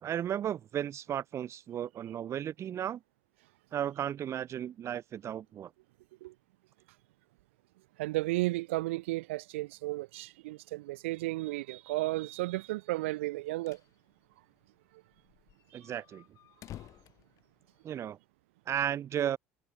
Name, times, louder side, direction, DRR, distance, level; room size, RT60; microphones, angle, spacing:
voice 1, 0.0-3.0 3.7-5.7 15.7-16.2 17.8-18.2 18.7-19.4, right 10 dB, 45° right, 1.4 m, -34 dB
voice 2, 8.0-13.8, right 19 dB, 70° right, 1.4 m, -33 dB
sound 1, 13.3-13.9 14.2-14.3 14.6-14.7 15.1-18.1, left 13 dB, 50° left, 7.6 m, -51 dB
hypercardioid pair, 65°, 7 cm